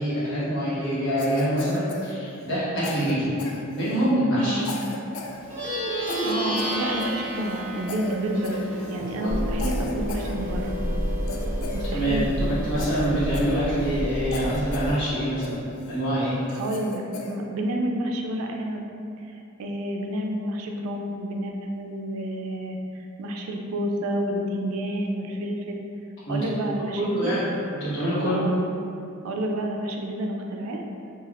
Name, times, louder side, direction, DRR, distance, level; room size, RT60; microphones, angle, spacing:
voice 1, 0.0-3.3 3.7-4.6 9.2-9.3 11.9-15.6 15.9-16.4 26.3-26.4 27.0-27.5 27.8-28.4, equal, 60° left, -11 dB, 1.1 m, -25 dB
Cough, 1.2-2.6 2.8-4.1 4.6-5.4 5.6-5.8 6.1-7.6 7.9-8.2 8.4-9.1 9.6-10.8 11.3-12.3 12.8-14.0 14.3-15.0 15.4-16.0 16.5-17.4, left 3 dB, 90° left, 0.3 m, -37 dB
voice 2, 4.4-4.7 6.2-8.6 8.9-10.8 11.7-12.5 16.5-18.8 19.2-25.8 26.3-27.3 28.3-28.6 29.2-30.8, right 1 dB, 85° right, 2 dB, 0.3 m, -29 dB
Plucked string instrument, 5.4-15.1, equal, 25° right, 1.0 m, -33 dB
sound 1, 9.3-14.9, equal, 10° right, 0.3 m, -30 dB
3.3 x 2.3 x 2.4 m, 2.6 s
head